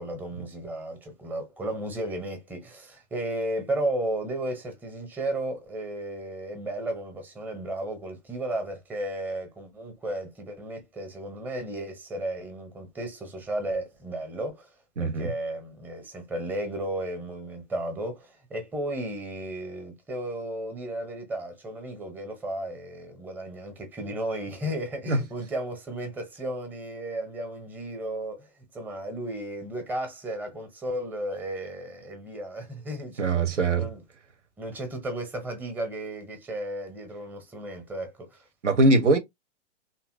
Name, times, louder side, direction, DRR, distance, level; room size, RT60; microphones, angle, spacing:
voice 1, 0.0-14.7 15.0-34.0 34.6-38.4, right 1 dB, 5° right, 0.7 m, -34 dB
voice 2, 15.0-15.3 25.1-25.2 33.2-33.9 38.6-39.2, right 2 dB, 85° right, 0.8 m, -21 dB
2.8 x 2.5 x 2.5 m
figure-of-eight pair, 115°, 35 cm